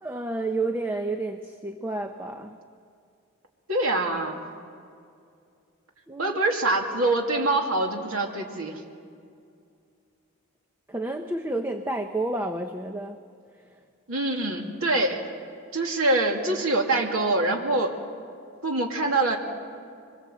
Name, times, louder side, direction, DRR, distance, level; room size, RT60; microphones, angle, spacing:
voice 1, 0.0-2.6 6.1-6.4 10.9-13.2 13.6-13.8, right 2 dB, 10° right, 5 dB, 0.7 m, -30 dB
voice 2, 3.7-4.4 6.2-8.8 14.1-15.2 15.7-17.9 18.6-19.4, right 2 dB, 75° right, 1 dB, 2.6 m, -24 dB
24.5 x 21.5 x 7.9 m, 2.3 s
head